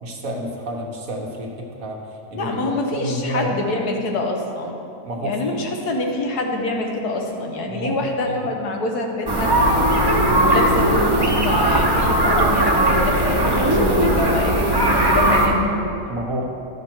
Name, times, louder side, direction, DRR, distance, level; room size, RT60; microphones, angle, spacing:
voice 1, 0.0-2.0 2.3-3.6 5.0-5.6 7.7-8.4 16.1-16.4, right 1 dB, 65° right, 0 dB, 1.5 m, -29 dB
voice 2, 2.3-4.8 5.2-9.8 10.2-15.9, left 2 dB, 90° left, 2 dB, 1.6 m, -25 dB
sound 1, 9.3-15.5, right 1 dB, 20° right, 0.9 m, -18 dB
12.5 x 6.0 x 4.5 m, 2.6 s
omnidirectional pair, 1.6 m